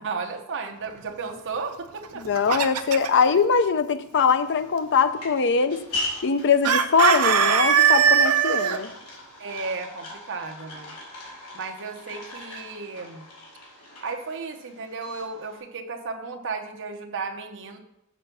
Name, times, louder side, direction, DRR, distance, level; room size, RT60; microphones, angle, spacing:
voice 1, 0.0-2.2 9.4-10.9 11.5-13.2 14.0-17.8, right 4 dB, 60° right, 4 dB, 1.0 m, -34 dB
Chicken rooster, 2.0-3.2 6.6-8.8, right 7 dB, 90° right, 0.7 m, -20 dB
voice 2, 2.2-5.8 6.2-8.9, left 5 dB, 55° left, 12 dB, 0.6 m, -22 dB
sound 1, 4.3-15.6, left 2 dB, 85° left, 3.1 m, -40 dB
7.5 x 4.6 x 6.7 m, 0.80 s
head